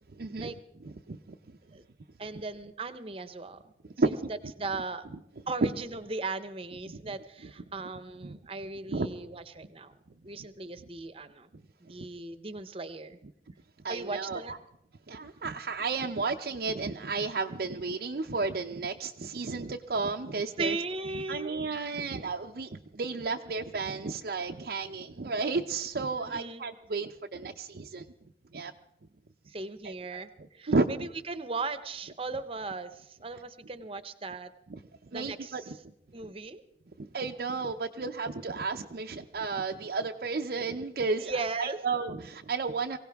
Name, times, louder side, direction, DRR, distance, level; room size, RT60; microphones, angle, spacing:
voice 1, 0.1-0.5 0.8-1.6 3.8-4.3 5.6-5.7 6.9-7.2 8.2-8.4 8.9-9.1 11.5-11.6 12.0-12.1 13.8-14.6 15.1-20.8 21.3-28.1 28.5-28.7 29.8-31.1 34.7-35.8 36.2-36.3 37.0-43.0, right 3 dB, 55° right, 3 dB, 0.6 m, -33 dB
voice 2, 2.2-3.6 4.0-4.1 4.6-5.0 5.5-9.9 10.2-11.5 11.8-13.2 13.9-14.5 20.6-21.6 26.2-26.6 29.5-34.5 35.1-35.6 36.1-36.6 41.2-41.8, right 3 dB, 30° right, 12 dB, 0.8 m, -37 dB
23.5 x 16.5 x 3.5 m, 0.83 s
head